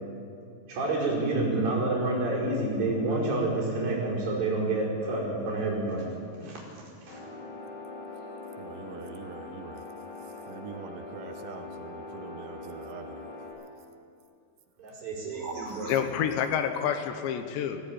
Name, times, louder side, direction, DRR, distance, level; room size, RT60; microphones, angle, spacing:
voice 1, 0.7-6.1 6.4-6.6 7.1-7.2 14.8-15.9, right 2 dB, 50° right, -4 dB, 6.5 m, -28 dB
sound 1, 7.1-13.5, left 3 dB, 45° left, 8.5 m, -42 dB
voice 2, 8.6-9.9 10.5-13.3 15.4-16.3, right 7 dB, 80° right, 8 dB, 3.2 m, -44 dB
voice 3, 15.7-17.8, left 9 dB, 75° left, 7 dB, 3.1 m, -28 dB
20.5 x 16.0 x 8.7 m, 2.4 s
omnidirectional pair, 5.3 m